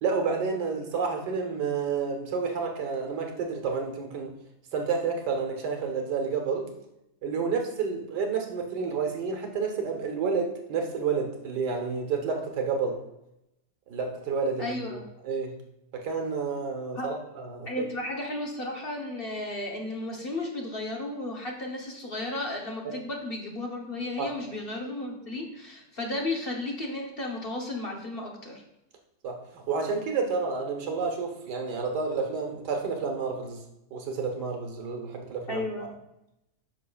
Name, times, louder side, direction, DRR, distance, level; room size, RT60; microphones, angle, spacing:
voice 1, 0.0-4.3 4.7-6.7 7.2-13.0 13.9-15.0 15.2-15.5 15.9-17.8 24.2-24.3 29.2-33.6 33.9-35.9, right 5 dB, 90° right, 3 dB, 1.7 m, -30 dB
voice 2, 14.6-15.0 16.9-17.1 17.7-28.6 35.5-35.9, left 2 dB, 40° left, 0 dB, 1.0 m, -34 dB
9.3 x 6.3 x 2.3 m, 0.85 s
omnidirectional pair, 1.7 m